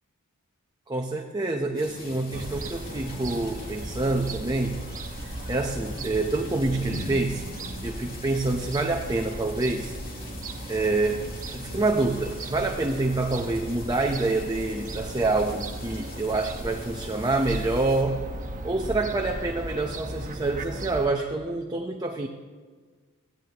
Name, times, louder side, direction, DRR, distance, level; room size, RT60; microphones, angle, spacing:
voice 1, 0.9-4.8 5.2-7.5 7.8-9.9 10.7-11.2 11.5-18.3 18.6-22.3, right 2 dB, 20° right, 2 dB, 0.8 m, -27 dB
sound 1, 1.8-18.0, left 2 dB, 40° left, 2.5 m, -43 dB
Fowl / Gull seagull, 2.3-21.1, right 1 dB, 35° right, 1.1 m, -37 dB
22.5 x 16.0 x 3.0 m, 1.5 s
head